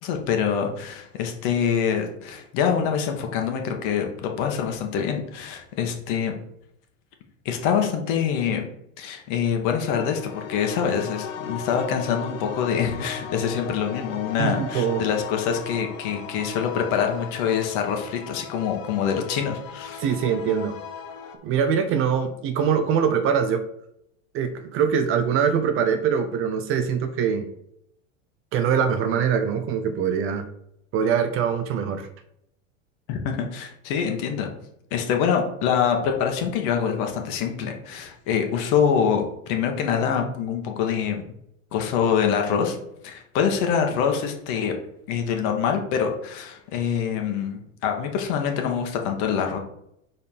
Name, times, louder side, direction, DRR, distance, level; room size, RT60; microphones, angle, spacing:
voice 1, 0.0-6.4 7.4-8.6 9.0-20.0 33.1-34.5 34.9-41.2 41.7-42.8 43.0-44.7 45.1-49.6, left 7 dB, 50° left, 3 dB, 1.6 m, -25 dB
sound 1, 9.9-21.4, left 7 dB, 70° left, 1.2 m, -37 dB
voice 2, 14.4-15.0 20.0-20.7 21.4-23.6 24.3-27.4 28.5-30.5 30.9-32.1, right 7 dB, 35° right, 8 dB, 0.7 m, -23 dB
5.1 x 4.2 x 5.6 m, 0.76 s
supercardioid pair, 135°, 40 cm